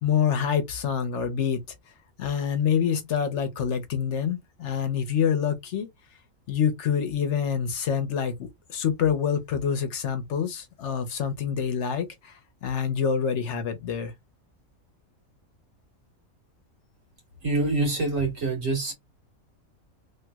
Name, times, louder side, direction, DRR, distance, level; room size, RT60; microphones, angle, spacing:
voice 1, 0.0-1.6 2.2-5.9 6.5-14.1, left 7 dB, 65° left, 0.9 m, -26 dB
voice 2, 17.4-18.9, right 2 dB, 70° right, 1.9 m, -25 dB
3.2 x 2.9 x 2.3 m
omnidirectional pair, 1.4 m